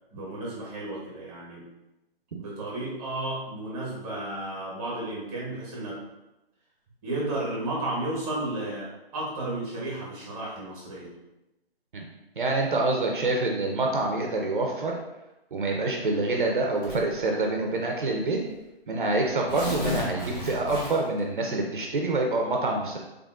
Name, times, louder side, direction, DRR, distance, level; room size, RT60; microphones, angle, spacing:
voice 1, 0.1-1.6 2.4-6.0 7.0-11.1, right 1 dB, 10° right, -5 dB, 0.8 m, -33 dB
voice 2, 12.4-14.9 15.5-18.4 18.9-23.0, right 2 dB, 55° right, 1 dB, 0.6 m, -26 dB
Tearing, 16.8-17.2 18.1-18.2 18.5-18.6 19.3-21.2, left 2 dB, 20° left, 0.8 m, -33 dB
3.7 x 3.4 x 2.3 m, 0.96 s
figure-of-eight pair, 145°, 31 cm